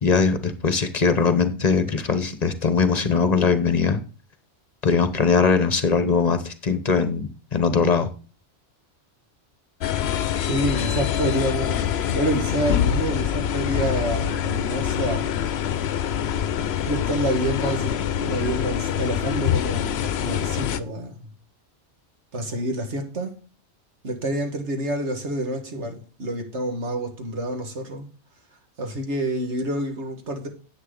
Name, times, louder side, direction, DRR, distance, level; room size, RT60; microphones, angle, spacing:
voice 1, 0.0-4.0 4.8-8.1, left 5 dB, 40° left, 1.1 m, -21 dB
sound 1, 9.8-20.8, left 9 dB, 70° left, 0.8 m, -25 dB
voice 2, 10.4-15.2 16.9-21.3 22.3-23.3 24.0-28.1 28.8-30.5, right 1 dB, 85° right, 2.1 m, -28 dB
10.0 x 8.0 x 3.9 m
omnidirectional pair, 1.2 m